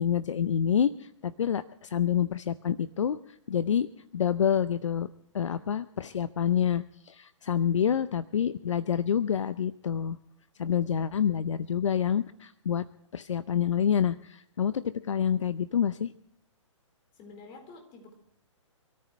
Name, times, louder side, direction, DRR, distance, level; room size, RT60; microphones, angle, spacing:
voice 1, 0.0-3.2 3.5-3.9 4.1-5.1 5.3-10.2 10.6-12.8 13.1-16.1, left 8 dB, 70° left, 15 dB, 0.6 m, -27 dB
voice 2, 17.2-18.1, left 3 dB, 30° left, 4 dB, 4.1 m, -49 dB
26.5 x 14.0 x 3.1 m, 0.70 s
figure-of-eight pair, 130°, 17 cm